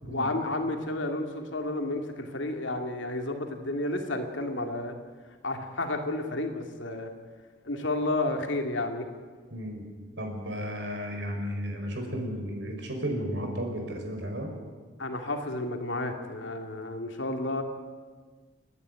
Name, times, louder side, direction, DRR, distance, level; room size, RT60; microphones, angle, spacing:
voice 1, 0.1-4.9 5.4-7.1 7.6-9.1 15.0-17.6, left 2 dB, 70° left, 4 dB, 2.6 m, -31 dB
voice 2, 9.5-9.8 10.2-14.5, equal, 60° right, 2 dB, 5.1 m, -33 dB
30.0 x 10.5 x 9.6 m, 1.5 s
head